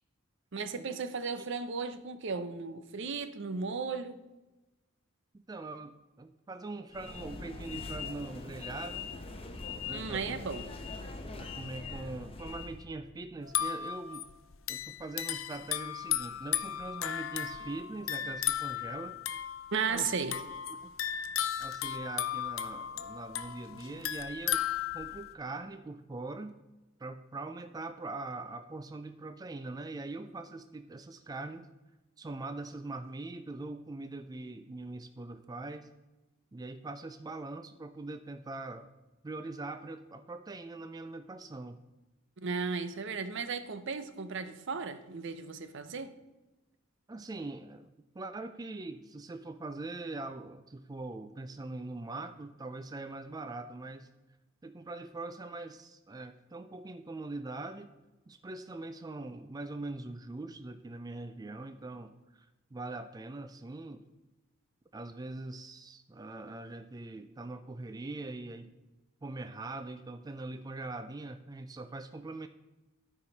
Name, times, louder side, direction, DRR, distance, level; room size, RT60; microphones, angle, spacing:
voice 1, 0.5-4.2 9.9-10.6 19.7-20.4 42.4-46.1, right 5 dB, 65° right, 0.7 m, -35 dB
voice 2, 5.3-9.1 9.8-10.4 11.4-14.3 14.7-19.2 19.9-20.1 20.8-20.9 21.6-24.7 24.9-26.6 27.0-31.7 32.2-35.9 36.5-38.9 39.2-41.8 47.1-54.1 54.6-57.9 58.3-64.0 64.9-68.8 69.2-72.5, right 2 dB, 20° right, 0.3 m, -42 dB
sound 1, 6.9-12.9, left 4 dB, 30° left, 0.9 m, -42 dB
sound 2, 13.4-25.3, left 10 dB, 75° left, 0.6 m, -35 dB
12.5 x 4.8 x 5.3 m
head